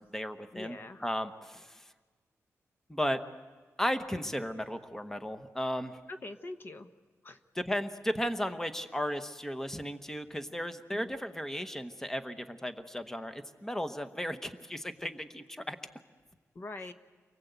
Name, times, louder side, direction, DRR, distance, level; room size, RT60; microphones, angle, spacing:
voice 1, 0.0-0.8 1.0-1.9 2.9-3.2 3.8-6.0 7.6-15.8, equal, 5° left, 9 dB, 1.1 m, -35 dB
voice 2, 0.5-1.0 6.1-6.9 7.2-7.4 10.9-11.1 16.5-16.9, left 2 dB, 40° left, 9 dB, 1.0 m, -43 dB
30.0 x 23.0 x 8.2 m, 1.4 s
wide cardioid pair, 120°, 5 cm